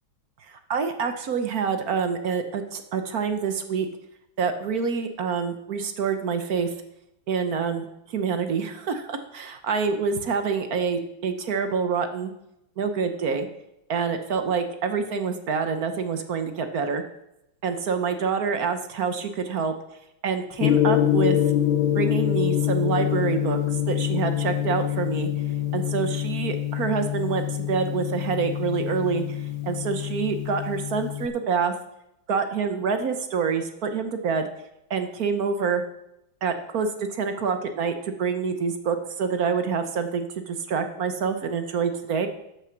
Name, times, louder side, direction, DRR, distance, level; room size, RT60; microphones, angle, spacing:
voice 1, 0.7-3.9 4.4-6.7 7.3-7.9 8.1-12.3 12.8-13.5 13.9-17.0 17.6-19.7 20.2-21.4 21.9-23.6 23.9-25.3 25.7-29.4 29.6-31.7 32.3-34.5 34.9-35.8 36.4-42.3, right 5 dB, 55° right, 8 dB, 1.2 m, -26 dB
Gong, 20.6-31.3, left 11 dB, 90° left, 1.5 m, -25 dB
12.5 x 6.8 x 5.8 m, 0.83 s
omnidirectional pair, 2.2 m